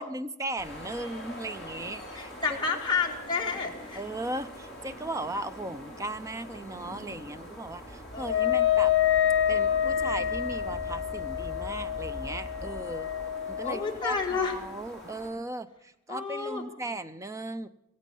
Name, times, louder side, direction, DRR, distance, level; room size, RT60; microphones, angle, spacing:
voice 1, 0.0-2.8 4.0-8.9 9.5-13.1 13.6-17.7, right 1 dB, 15° right, 12 dB, 0.5 m, -37 dB
sound 1, 0.6-15.3, equal, ahead, 5.1 m, -43 dB
voice 2, 2.1-4.0 8.1-8.6 13.6-14.6 16.1-16.6, left 5 dB, 20° left, -1 dB, 1.9 m, -30 dB
Wind instrument woodwind instrument, 8.2-13.9, left 10 dB, 60° left, 0.9 m, -27 dB
16.5 x 15.0 x 5.5 m, 0.82 s
head